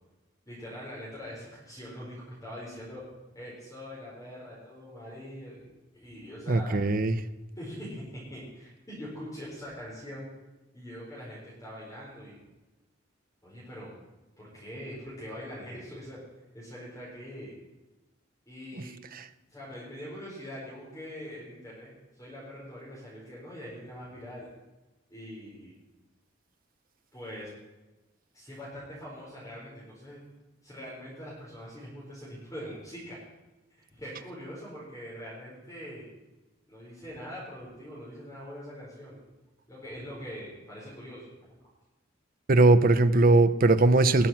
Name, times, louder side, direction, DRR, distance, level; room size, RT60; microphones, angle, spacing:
voice 1, 0.5-3.0 3.3-5.7 5.9-6.8 7.6-8.0 8.3-10.3 10.7-12.4 13.4-14.0 14.4-16.2 16.5-17.5 18.5-18.9 19.5-24.5 25.1-25.7 27.1-27.5 28.3-30.2 30.6-33.2 33.8-36.1 36.7-39.2 39.7-41.3, equal, 20° left, -8 dB, 4.8 m, -43 dB
voice 2, 6.5-7.2 18.7-18.8 19.1-19.3 42.5-44.3, right 2 dB, 50° right, 10 dB, 0.7 m, -20 dB
20.0 x 7.5 x 5.8 m, 1.1 s
head